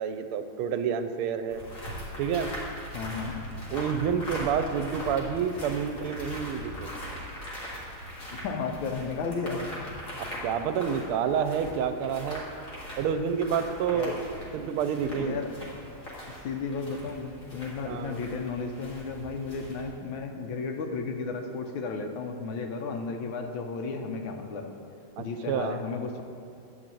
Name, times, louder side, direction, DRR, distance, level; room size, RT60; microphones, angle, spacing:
voice 1, 0.0-1.6 2.2-2.5 3.7-6.9 10.4-12.5 13.0-15.4 17.9-18.2 25.2-25.8, right 7 dB, 90° right, 9 dB, 1.5 m, -29 dB
sound 1, 1.5-19.9, equal, 40° left, 2.1 m, -40 dB
voice 2, 2.9-3.4 8.3-9.7 13.9-14.2 15.1-15.5 16.3-24.7 25.2-26.2, left 4 dB, 75° left, 4 dB, 1.4 m, -34 dB
10.5 x 4.0 x 7.5 m, 2.5 s
omnidirectional pair, 2.3 m